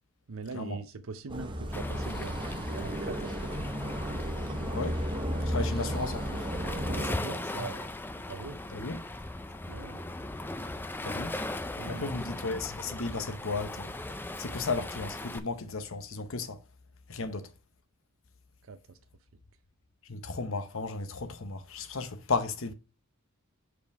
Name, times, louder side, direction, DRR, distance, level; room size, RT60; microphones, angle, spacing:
voice 1, 0.3-3.7 6.9-8.0 8.3-8.6 9.7-10.0 11.8-12.1 18.7-18.8, right 4 dB, 65° right, 0.6 m, -41 dB
sound 1, 1.3-7.2, equal, 20° right, 0.9 m, -34 dB
Waves surf, 1.7-15.4, left 2 dB, 10° left, 0.4 m, -38 dB
voice 2, 5.5-6.4 8.7-9.0 11.0-11.3 11.8-13.9 14.4-16.6 17.1-17.5 20.1-22.7, left 3 dB, 60° left, 0.8 m, -34 dB
5.2 x 5.0 x 4.6 m
head